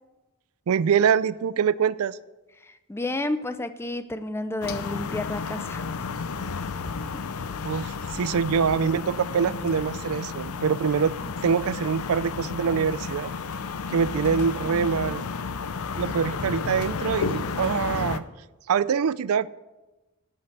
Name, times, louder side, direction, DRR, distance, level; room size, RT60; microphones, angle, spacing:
voice 1, 0.7-2.2 7.6-11.1 11.4-13.3 13.9-15.3 16.0-18.2 18.7-19.5, right 6 dB, 75° right, 18 dB, 0.4 m, -24 dB
voice 2, 2.6-5.9, left 2 dB, 10° left, 11 dB, 0.4 m, -31 dB
sound 1, 4.6-18.2, left 5 dB, 75° left, 0.6 m, -32 dB
11.5 x 5.7 x 7.9 m, 1.1 s
head